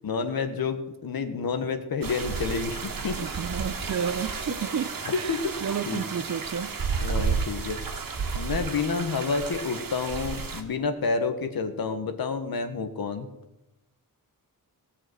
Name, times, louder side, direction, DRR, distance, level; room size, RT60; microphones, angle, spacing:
voice 1, 0.0-3.2 5.1-5.4 5.9-6.0 7.0-7.8 8.3-13.3, left 5 dB, 90° left, 1.5 m, -29 dB
sound 1, 2.0-10.6, right 5 dB, 75° right, 1.7 m, -32 dB
voice 2, 3.2-6.7, right 7 dB, 55° right, 0.6 m, -31 dB
17.0 x 6.0 x 7.9 m
wide cardioid pair, 95°, 35 cm